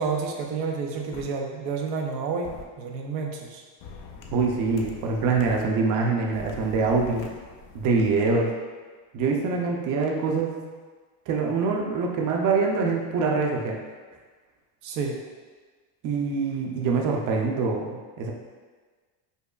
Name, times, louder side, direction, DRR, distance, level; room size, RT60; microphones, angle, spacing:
voice 1, 0.0-3.6 14.8-15.2, right 5 dB, 85° right, 1 dB, 0.7 m, -30 dB
sound 1, 1.1-1.2 2.4-2.6 3.8-5.6 6.3-8.1, left 5 dB, 60° left, 0.6 m, -43 dB
voice 2, 4.3-7.3 7.7-8.5 9.1-10.6 11.3-13.8 16.0-18.3, right 4 dB, 45° right, 0 dB, 0.6 m, -24 dB
5.2 x 2.1 x 2.3 m, 1.4 s
supercardioid pair, 105°, 45 cm